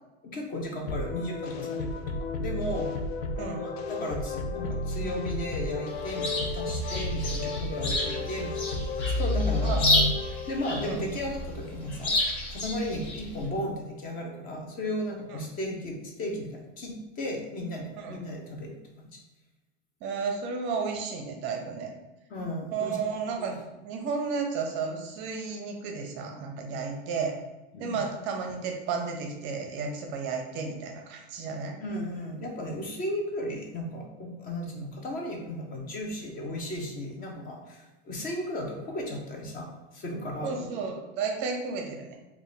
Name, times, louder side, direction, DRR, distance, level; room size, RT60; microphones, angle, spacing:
voice 1, 0.2-2.9 3.5-10.0 10.5-12.2 12.5-19.2 22.3-23.0 23.4-23.5 27.7-28.0 31.8-40.6, left 1 dB, 30° left, 1 dB, 0.6 m, -35 dB
sound 1, 0.9-11.0, left 2 dB, 80° left, 0.5 m, -32 dB
voice 2, 3.4-3.7 9.6-9.9 10.9-11.0 15.3-15.4 18.0-18.2 20.0-21.9 22.7-27.4 27.8-31.8 40.4-42.2, right 5 dB, 35° right, 3 dB, 0.5 m, -33 dB
Chirp tweet, 5.9-13.5, left 1 dB, 60° left, 1.2 m, -31 dB
3.2 x 2.3 x 3.8 m, 1.0 s
supercardioid pair, 140°, 31 cm